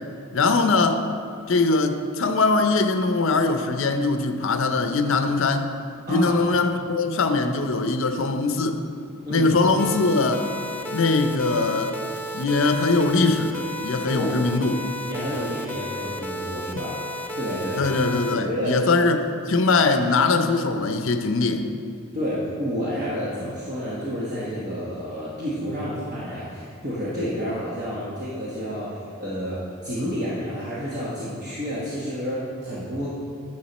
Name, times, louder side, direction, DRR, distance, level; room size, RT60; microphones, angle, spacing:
voice 1, 0.3-1.1 1.5-5.7 6.1-8.8 9.3-10.5 10.9-12.0 12.3-14.8 16.7-16.8 17.8-21.7, left 3 dB, 60° left, 7 dB, 0.6 m, -21 dB
voice 2, 6.1-6.4 9.2-9.5 14.1-14.3 15.1-16.9 17.4-17.8 18.3-18.7 22.1-33.1, equal, 35° right, -8 dB, 1.4 m, -30 dB
sound 1, 9.8-18.3, equal, 10° left, 0.4 m, -33 dB
10.0 x 6.5 x 4.2 m, 2.4 s
head